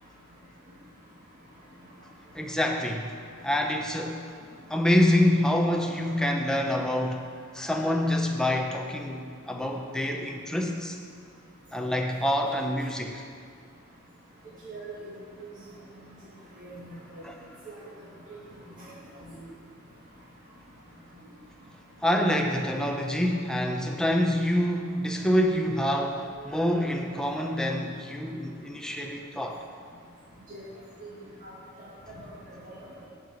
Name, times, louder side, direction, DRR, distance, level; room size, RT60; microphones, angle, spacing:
voice 1, 2.3-3.2 3.4-4.3 4.7-7.3 7.5-11.0 11.7-13.2 17.2-17.4 22.0-29.6, left 1 dB, 5° left, 2 dB, 0.7 m, -26 dB
voice 2, 14.7-15.0 15.4-15.5 16.6-17.2 17.7-17.8 19.2-19.3 30.5-30.6 31.0-31.1 31.4-31.5 32.2-32.3 32.6-32.8, right 3 dB, 40° right, -8 dB, 1.8 m, -42 dB
10.5 x 5.8 x 7.2 m, 2.2 s
head